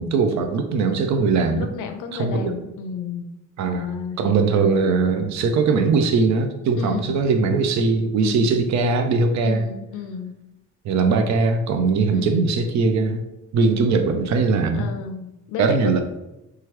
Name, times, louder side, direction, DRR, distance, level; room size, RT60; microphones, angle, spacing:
voice 1, 0.0-1.7 2.1-2.5 3.6-3.9 4.2-9.7 10.8-13.2 13.5-14.9 15.6-16.0, right 4 dB, 65° right, 6 dB, 0.5 m, -20 dB
voice 2, 1.6-3.3 3.6-4.8 6.8-7.2 8.2-8.6 9.4-10.3 12.1-12.5 14.7-16.0, left 6 dB, 85° left, 7 dB, 0.5 m, -32 dB
3.0 x 2.4 x 2.9 m, 0.93 s
cardioid pair, 90°, 30 cm